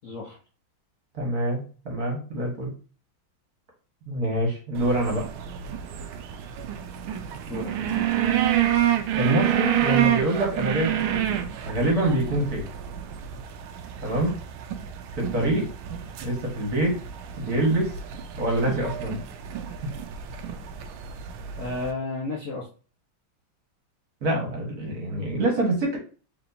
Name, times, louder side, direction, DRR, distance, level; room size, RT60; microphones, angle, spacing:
voice 1, 0.0-0.4 7.5-8.1 15.3-15.6 21.6-22.7, left 3 dB, 55° left, -3 dB, 0.9 m, -33 dB
voice 2, 1.1-2.7 4.1-5.2 9.1-12.7 14.0-14.4 15.2-15.6 16.2-17.0 17.4-17.9 18.3-19.2 24.2-26.0, right 1 dB, 50° right, -1 dB, 1.7 m, -25 dB
sound 1, 4.8-21.9, right 10 dB, 80° right, 1.4 m, -28 dB
4.4 x 3.7 x 2.6 m, 0.38 s
omnidirectional pair, 2.3 m